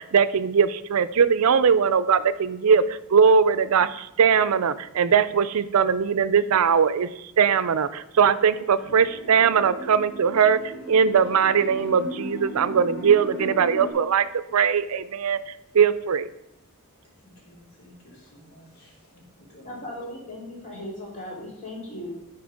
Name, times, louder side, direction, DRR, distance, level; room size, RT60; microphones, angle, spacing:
voice 1, 0.0-14.3 14.5-16.3, right 6 dB, 70° right, 14 dB, 0.5 m, -20 dB
sound 1, 8.8-13.9, right 1 dB, 50° left, 2.4 m, -37 dB
voice 2, 17.2-19.8, equal, 70° left, -3 dB, 3.1 m, -52 dB
voice 3, 19.6-22.1, left 1 dB, 35° left, -3 dB, 2.6 m, -37 dB
10.5 x 4.6 x 5.1 m, 0.85 s
head